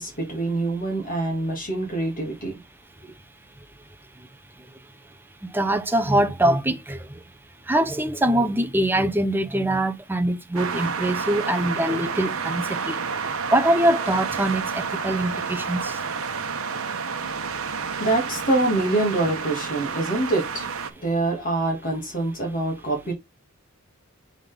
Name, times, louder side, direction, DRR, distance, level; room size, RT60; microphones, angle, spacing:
voice 1, 0.0-2.6 3.0-3.1 17.9-20.7 21.0-23.1, right 2 dB, 40° left, 2.0 m, -25 dB
voice 2, 5.5-7.2 7.7-13.0 13.5-16.0, right 1 dB, 10° right, 0.7 m, -23 dB
sound 1, 10.6-20.9, right 5 dB, 80° right, 1.0 m, -30 dB
7.1 x 3.9 x 3.4 m
head